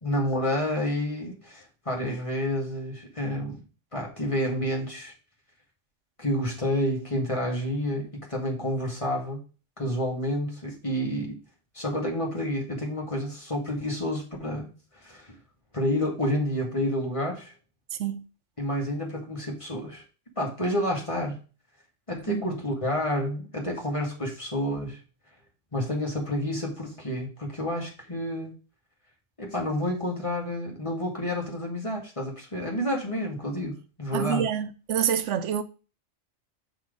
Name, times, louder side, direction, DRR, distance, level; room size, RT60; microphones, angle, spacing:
voice 1, 0.0-3.6 3.9-5.1 6.2-9.4 9.8-11.4 11.7-15.4 15.7-17.5 18.6-20.0 20.4-21.4 22.1-25.0 25.7-28.5 29.4-34.4, left 1 dB, 25° left, 2.1 m, -29 dB
voice 2, 34.1-35.6, right 9 dB, 80° right, 1.0 m, -27 dB
6.2 x 4.2 x 5.0 m
omnidirectional pair, 1.2 m